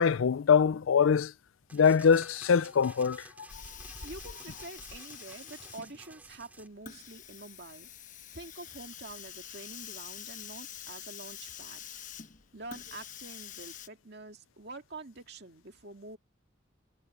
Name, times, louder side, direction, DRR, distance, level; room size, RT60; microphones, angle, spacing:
voice 1, 0.0-1.3 1.7-3.3, left 6 dB, 80° left, 0.4 m, -23 dB
sound 1, 1.7-6.7, right 2 dB, 10° right, 2.4 m, -52 dB
Hiss, 3.5-13.9, left 8 dB, 40° left, 1.0 m, -46 dB
voice 2, 4.0-7.9 8.3-11.8 12.5-16.2, right 2 dB, 55° right, 2.3 m, -47 dB
head